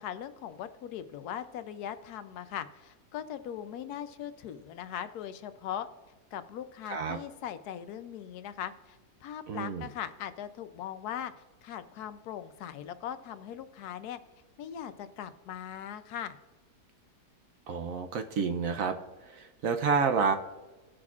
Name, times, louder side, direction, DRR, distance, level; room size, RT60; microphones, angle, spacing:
voice 1, 0.0-5.9 6.3-11.3 11.6-14.2 14.6-16.4, left 10 dB, 80° left, 11 dB, 1.1 m, -40 dB
voice 2, 9.5-9.9 17.7-19.0 19.3-20.3, right 5 dB, 65° right, 6 dB, 0.9 m, -29 dB
18.0 x 6.2 x 2.4 m, 1.2 s
omnidirectional pair, 1.7 m